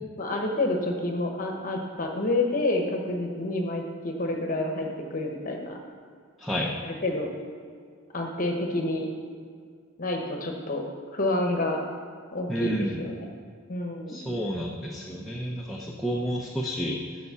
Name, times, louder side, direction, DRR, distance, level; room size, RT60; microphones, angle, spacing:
voice 1, 0.2-5.8 6.8-7.3 8.1-9.1 10.0-10.8 11.1-11.8 12.3-13.3 13.7-14.4, left 2 dB, 40° left, 2 dB, 1.0 m, -28 dB
voice 2, 6.4-6.8 12.5-13.0 14.1-17.2, equal, ahead, -2 dB, 0.6 m, -30 dB
6.9 x 6.6 x 6.8 m, 2.1 s
head